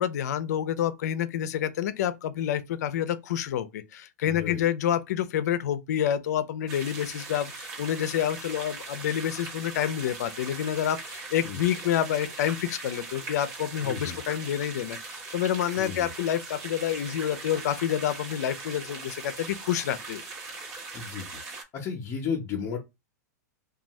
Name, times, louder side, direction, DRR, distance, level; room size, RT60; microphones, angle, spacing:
voice 1, 0.0-20.2, left 10 dB, 70° left, 0.5 m, -28 dB
voice 2, 4.3-4.6 11.4-11.6 13.8-14.2 15.8-16.1 20.9-21.3 21.7-22.8, left 6 dB, 35° left, 0.8 m, -33 dB
sound 1, 6.7-21.6, right 3 dB, 35° right, 1.0 m, -40 dB
2.6 x 2.3 x 3.0 m
hypercardioid pair, 120°, 9 cm